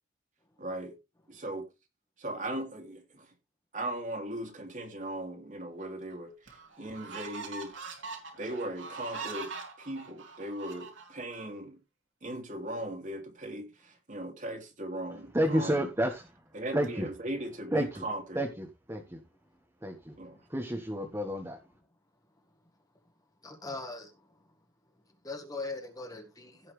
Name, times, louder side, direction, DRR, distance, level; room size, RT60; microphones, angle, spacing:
voice 1, 0.6-0.9 1.3-1.6 2.2-3.3 3.7-7.8 8.4-11.8 12.2-15.9 16.5-18.5 20.2-20.4, right 1 dB, 40° right, 2.6 m, -38 dB
sound 1, 5.8-5.9 6.5-11.4, right 4 dB, 70° right, 3.1 m, -42 dB
voice 2, 15.3-16.2 16.7-17.1 17.7-18.0 18.3-19.2 19.8-20.1 20.5-21.6, equal, 15° right, 1.4 m, -30 dB
voice 3, 23.4-24.3 25.2-26.7, left 3 dB, 20° left, 1.8 m, -40 dB
16.5 x 5.7 x 3.3 m
head